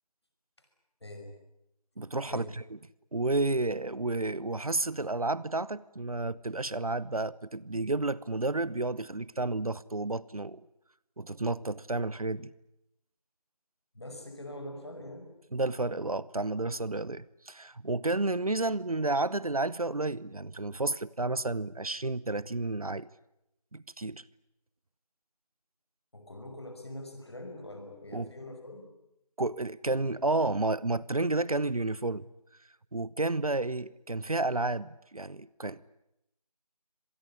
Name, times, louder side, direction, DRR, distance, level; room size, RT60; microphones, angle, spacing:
voice 1, 1.0-1.3 2.3-2.5 13.9-15.3 26.1-28.9, left 1 dB, 40° left, 5.9 m, -43 dB
voice 2, 2.0-2.6 3.1-10.6 11.2-12.5 15.5-23.1 23.7-24.2 28.1-28.3 29.4-32.2 32.9-35.8, right 2 dB, 65° right, 0.9 m, -31 dB
25.5 x 19.5 x 10.0 m
figure-of-eight pair, 175°, 20 cm